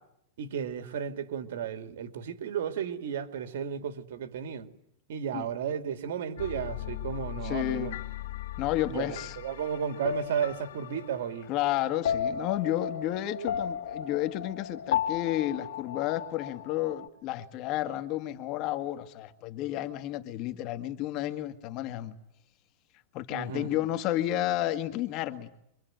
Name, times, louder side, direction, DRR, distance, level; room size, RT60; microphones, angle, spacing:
voice 1, 0.4-4.7 5.1-7.9 8.9-11.5 23.3-23.7, right 8 dB, 75° right, 2.9 m, -33 dB
sound 1, 6.4-17.1, left 9 dB, 80° left, 1.5 m, -35 dB
voice 2, 7.4-7.9 8.6-9.4 11.5-22.2 23.1-25.5, left 13 dB, 40° left, 1.9 m, -31 dB
26.0 x 23.5 x 9.3 m
supercardioid pair, 155°, 0 cm